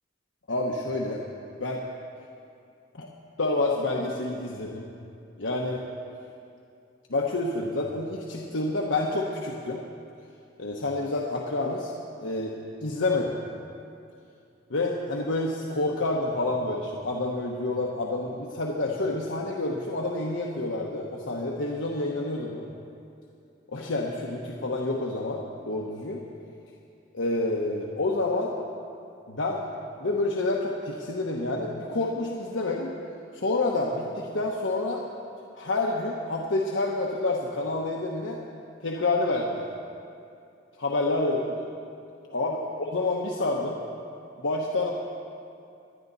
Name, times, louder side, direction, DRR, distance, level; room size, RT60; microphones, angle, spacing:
voice 1, 0.5-1.2 1.6-1.8 3.0-3.1 3.4-4.9 5.4-5.8 7.1-9.8 10.6-11.9 12.2-12.5 12.8-13.3 14.7-22.6 23.7-26.2 27.1-28.5 29.3-29.6 30.0-32.9 33.3-35.0 35.6-38.4 38.8-39.7 40.8-41.5 42.3-43.8 44.4-44.9, left 2 dB, 90° left, -2 dB, 1.1 m, -28 dB
24.5 x 10.0 x 4.1 m, 2.5 s
head